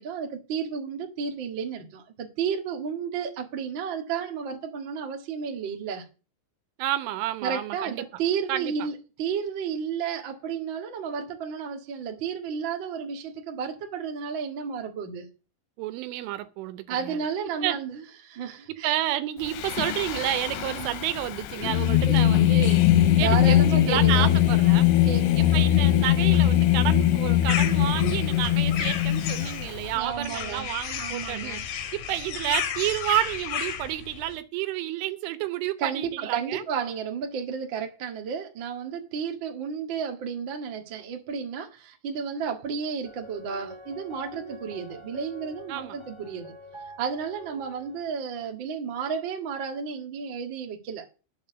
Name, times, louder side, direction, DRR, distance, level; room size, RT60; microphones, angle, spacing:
voice 1, 0.0-6.0 7.4-15.3 16.9-18.9 20.6-21.0 22.1-22.4 23.2-24.3 25.0-25.5 29.9-30.7 31.0-31.6 35.8-46.5 47.0-51.1, right 6 dB, 65° right, 1.1 m, -32 dB
voice 2, 6.8-8.0 8.5-8.7 15.8-17.2 17.6-17.8 18.7-24.9 25.4-36.6 45.7-46.0, right 13 dB, 90° right, 3.6 m, -30 dB
Singing, 19.5-29.9, left 12 dB, 80° left, 3.0 m, -21 dB
sound 1, 27.5-34.4, left 8 dB, 65° left, 2.8 m, -33 dB
sound 2, 43.0-48.1, equal, 35° right, 0.4 m, -45 dB
10.5 x 7.2 x 6.9 m
omnidirectional pair, 5.4 m